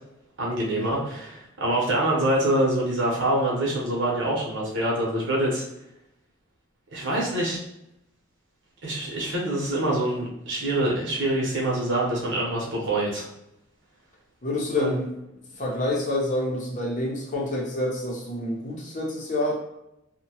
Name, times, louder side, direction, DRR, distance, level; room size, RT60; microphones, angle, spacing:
voice 1, 0.4-5.6 6.9-7.6 8.8-13.3 14.8-14.9, right 1 dB, 65° right, -3 dB, 0.9 m, -25 dB
voice 2, 14.4-15.1 15.6-19.5, left 1 dB, 40° left, -2 dB, 0.6 m, -27 dB
2.8 x 2.1 x 2.9 m, 0.85 s
head